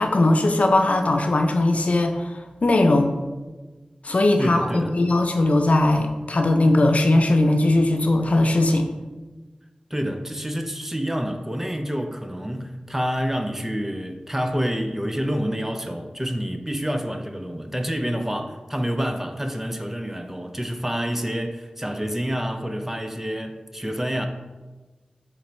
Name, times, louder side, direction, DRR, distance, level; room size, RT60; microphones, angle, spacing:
voice 1, 0.0-3.1 4.0-8.9, left 2 dB, 65° left, 0.4 m, -19 dB
voice 2, 4.4-5.0 9.9-24.3, equal, 15° right, 0.4 m, -28 dB
4.5 x 3.8 x 3.0 m
wide cardioid pair, 50°, 3 cm